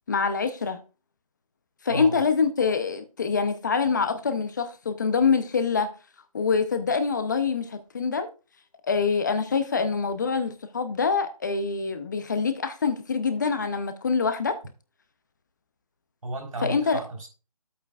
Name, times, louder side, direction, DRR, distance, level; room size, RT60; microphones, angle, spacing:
voice 1, 0.1-0.8 1.8-5.9 6.3-8.3 8.8-14.6 16.6-17.0, left 5 dB, 30° left, 0.6 m, -25 dB
voice 2, 1.9-2.2 16.2-17.3, right 2 dB, 65° right, 3.7 m, -34 dB
10.5 x 8.3 x 2.3 m
figure-of-eight pair, 160°, 19 cm